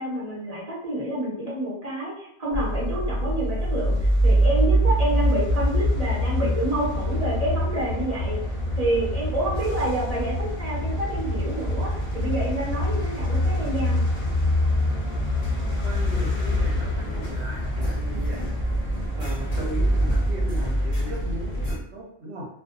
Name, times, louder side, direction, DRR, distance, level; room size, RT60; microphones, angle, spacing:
voice 1, 0.0-4.0 4.2-8.4 8.8-14.0, right 1 dB, 35° right, -6 dB, 0.9 m, -28 dB
sound 1, 2.5-21.8, equal, 45° left, 0.6 m, -24 dB
voice 2, 15.8-18.4 19.2-22.5, right 1 dB, 65° right, -2 dB, 1.0 m, -37 dB
2.5 x 2.1 x 2.4 m, 0.78 s
omnidirectional pair, 1.2 m